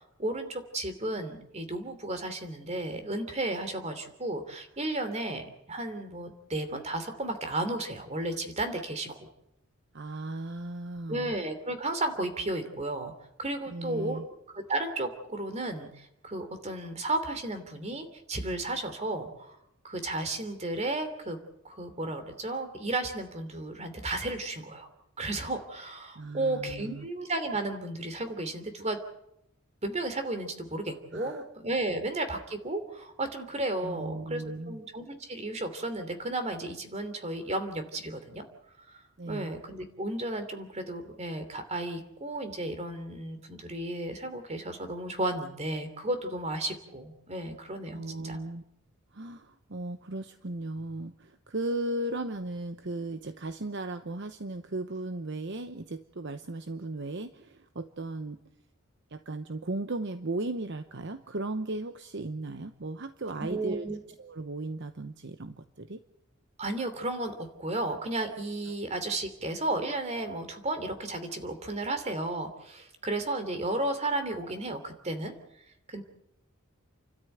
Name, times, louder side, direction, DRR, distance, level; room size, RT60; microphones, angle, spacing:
voice 1, 0.2-9.3 11.1-13.1 13.4-14.2 14.5-19.6 19.8-21.4 21.6-24.9 25.2-29.0 29.8-38.4 39.2-48.4 63.4-64.0 66.6-75.3 75.9-76.0, right 2 dB, 30° right, 8 dB, 3.0 m, -33 dB
voice 2, 9.9-11.3 13.7-14.3 26.1-27.1 31.1-31.4 33.8-34.8 39.2-39.5 47.9-48.6 49.1-58.4 59.1-63.9 64.2-66.0 68.7-68.8, right 2 dB, 55° right, 9 dB, 0.9 m, -36 dB
30.0 x 13.0 x 9.1 m, 0.79 s
head